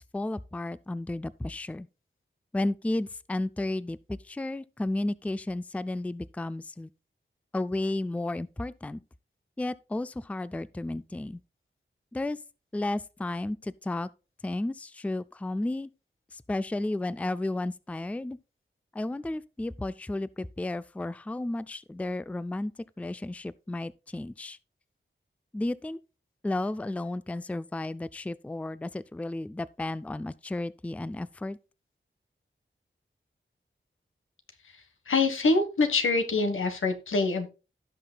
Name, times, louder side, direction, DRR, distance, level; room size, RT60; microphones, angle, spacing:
voice 1, 0.1-1.9 2.5-6.9 7.5-9.0 9.6-11.4 12.1-12.4 12.7-13.6 13.8-14.1 14.4-15.9 16.5-18.4 19.0-22.7 23.0-24.6 25.5-26.0 26.4-31.6, left 2 dB, 5° left, 0.4 m, -33 dB
voice 2, 35.1-37.5, left 3 dB, 90° left, 1.4 m, -25 dB
16.5 x 5.8 x 2.3 m
wide cardioid pair, 75°, 20 cm